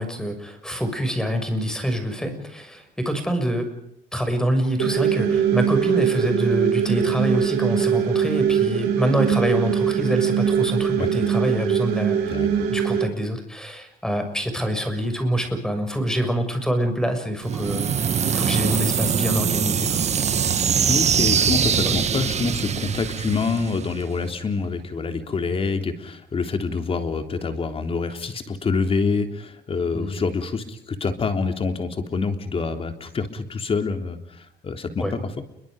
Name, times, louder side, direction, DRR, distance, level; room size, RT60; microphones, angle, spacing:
voice 1, 0.0-3.7 4.1-12.4 12.7-17.9 18.3-20.0 21.8-21.9 29.9-30.2 35.0-35.1, equal, 5° left, 7 dB, 6.6 m, -25 dB
sound 1, 4.8-13.0, right 8 dB, 85° right, 5.8 m, -22 dB
voice 2, 12.3-12.7 20.9-35.2, left 4 dB, 35° left, 6 dB, 3.5 m, -26 dB
sound 2, 17.4-24.3, right 7 dB, 40° right, 1.8 m, -23 dB
29.5 x 23.5 x 5.2 m, 0.74 s
cardioid pair, 110°, 17 cm